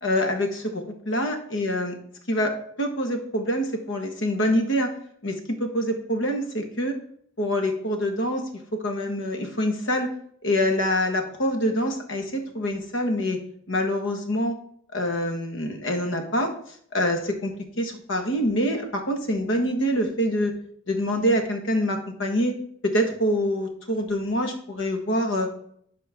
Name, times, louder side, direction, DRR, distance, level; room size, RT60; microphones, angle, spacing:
voice 1, 0.0-1.9 2.3-4.9 5.2-6.9 7.4-8.4 8.7-10.1 10.4-13.4 13.7-14.5 14.9-16.5 16.9-17.5 17.8-20.5 20.9-22.6 22.8-25.5, equal, 65° left, 5 dB, 1.4 m, -25 dB
11.5 x 4.5 x 3.5 m, 0.64 s
head